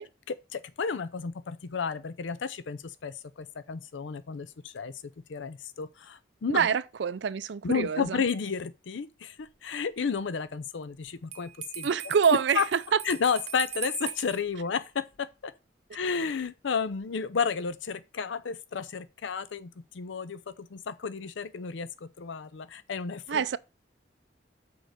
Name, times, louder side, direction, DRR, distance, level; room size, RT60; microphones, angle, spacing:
voice 1, 0.3-4.9 5.3-6.7 7.6-11.5 11.8-11.9 12.6-12.7 13.0-15.5 15.9-19.7 19.9-23.6, left 5 dB, 80° left, 0.5 m, -32 dB
voice 2, 6.5-8.2 11.8-13.0 23.3-23.6, right 6 dB, 70° right, 0.4 m, -26 dB
Bell, 11.3-14.4, right 8 dB, 35° right, 1.1 m, -39 dB
6.3 x 4.7 x 6.6 m
head